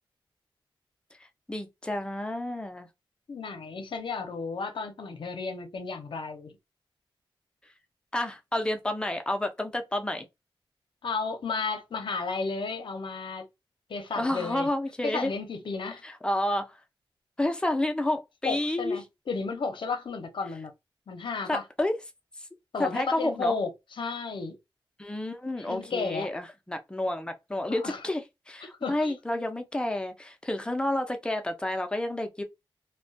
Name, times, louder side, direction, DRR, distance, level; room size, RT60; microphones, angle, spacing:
voice 1, 1.5-2.9 8.1-10.3 14.2-15.3 16.0-16.8 17.4-19.0 21.5-21.9 22.8-23.6 25.0-32.4, left 1 dB, 10° left, 0.5 m, -30 dB
voice 2, 3.3-6.6 11.0-13.4 13.9-14.7 15.0-16.0 18.4-20.7 21.1-21.6 22.7-23.7 24.0-24.6 25.5-26.3 27.7-28.0 28.8-29.1, left 4 dB, 65° left, 0.6 m, -33 dB
2.3 x 2.1 x 2.6 m
wide cardioid pair, 95°, 9 cm